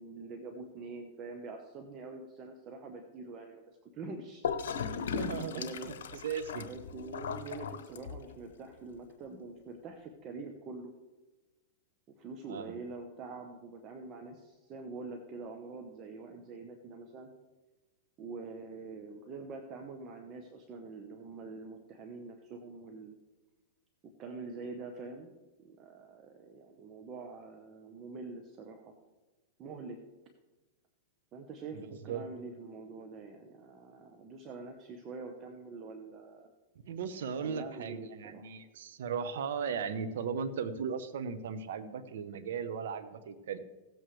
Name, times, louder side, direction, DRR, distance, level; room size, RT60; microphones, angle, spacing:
voice 1, 0.0-3.6 3.9-4.4 5.5-6.2 6.6-10.9 12.2-17.3 18.2-23.1 24.2-25.3 25.6-28.9 29.6-30.0 31.3-36.5 37.4-38.5, right 3 dB, 35° right, 4 dB, 1.1 m, -45 dB
Gurgling / Toilet flush, 4.4-8.4, left 6 dB, 80° left, 0.9 m, -37 dB
voice 2, 5.1-5.9 6.2-6.7 12.5-12.7 31.7-32.2 36.8-43.6, right 6 dB, 75° right, 10 dB, 1.0 m, -37 dB
17.0 x 7.9 x 3.3 m, 1.2 s
hypercardioid pair, 130°, 0 cm